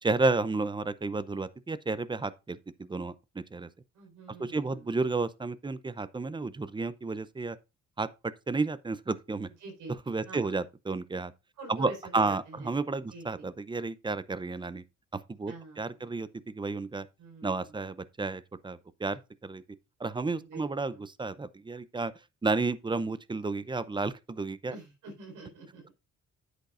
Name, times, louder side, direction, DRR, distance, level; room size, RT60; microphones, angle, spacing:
voice 1, 0.0-3.7 4.4-7.6 8.0-9.5 10.1-11.3 11.7-14.8 15.1-17.1 17.4-19.6 20.0-22.1 22.4-24.7, right 3 dB, 15° right, 0.6 m, -32 dB
voice 2, 3.9-5.0 9.6-9.9 10.2-10.5 11.6-12.7 13.1-13.5 15.5-16.1 17.2-17.8 20.4-21.0 24.7-25.9, right 3 dB, 85° right, 4.5 m, -46 dB
10.0 x 8.2 x 2.5 m
cardioid pair, 90°, 30 cm